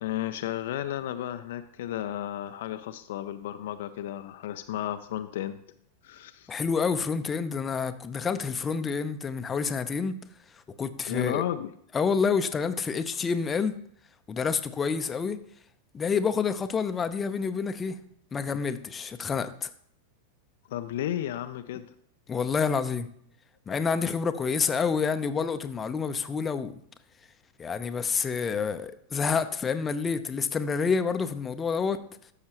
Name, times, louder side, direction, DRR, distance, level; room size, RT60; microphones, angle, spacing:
voice 1, 0.0-5.6 6.0-6.5 11.1-11.7 20.7-21.9, left 12 dB, 55° left, 0.4 m, -33 dB
voice 2, 6.5-10.2 10.5-11.4 11.9-13.7 14.3-15.4 15.9-18.0 18.3-19.7 22.3-23.1 23.7-26.7 27.6-32.0, left 5 dB, 20° left, 0.6 m, -28 dB
12.5 x 6.5 x 2.9 m
figure-of-eight pair, 90°, 0 cm